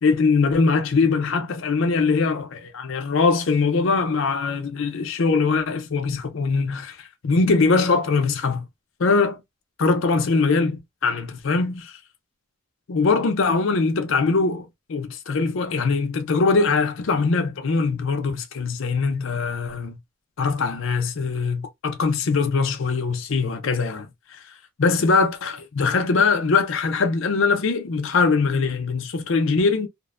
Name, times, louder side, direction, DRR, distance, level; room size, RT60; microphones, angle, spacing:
voice 1, 0.0-7.0 7.2-8.6 9.0-9.4 9.8-11.9 12.9-20.0 20.4-24.1 24.8-29.9, left 4 dB, 65° left, 0.5 m, -22 dB
2.5 x 2.1 x 2.4 m
head